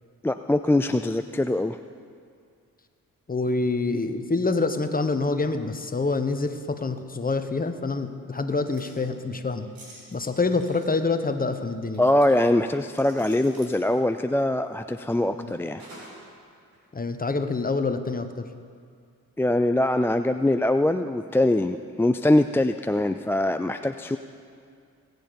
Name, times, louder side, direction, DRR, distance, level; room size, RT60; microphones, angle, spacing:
voice 1, 0.2-1.8 12.0-15.8 19.4-24.2, left 1 dB, 5° left, 8 dB, 0.3 m, -23 dB
voice 2, 3.3-9.7 10.1-12.1 15.3-15.5 16.9-18.5, left 3 dB, 25° left, 8 dB, 1.1 m, -26 dB
sound 1, 8.5-9.0 9.7-10.9 11.9-12.3 13.0-13.8 15.8-16.3 16.7-16.8, right 1 dB, 75° right, 3.8 m, -48 dB
20.0 x 8.0 x 5.2 m, 2.3 s
supercardioid pair, 55°, 36 cm